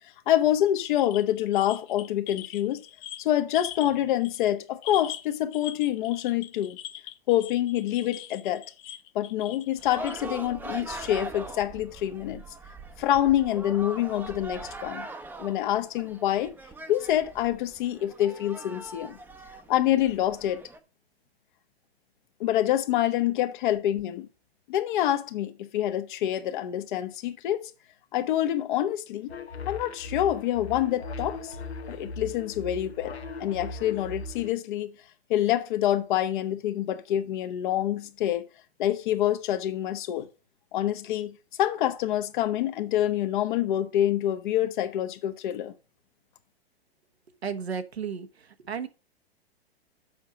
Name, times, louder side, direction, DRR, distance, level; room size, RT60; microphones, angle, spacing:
voice 1, 0.3-2.9 3.2-6.8 7.3-8.6 9.1-12.4 13.0-15.1 15.4-16.5 16.9-19.2 19.7-20.6 22.4-24.3 24.7-27.7 28.1-29.3 29.6-31.5 31.9-33.1 33.4-34.9 35.3-38.4 38.8-40.3 40.7-45.7, left 12 dB, 50° left, 1.1 m, -26 dB
sound 1, 1.0-4.0 4.2-4.5 4.8-10.2, left 12 dB, 20° left, 0.3 m, -42 dB
sound 2, 9.8-20.8, right 2 dB, 5° right, 0.7 m, -41 dB
sound 3, 29.3-34.5, left 2 dB, 85° left, 1.2 m, -39 dB
voice 2, 47.4-48.9, right 6 dB, 85° right, 1.2 m, -34 dB
7.1 x 5.6 x 4.9 m
hypercardioid pair, 115°, 31 cm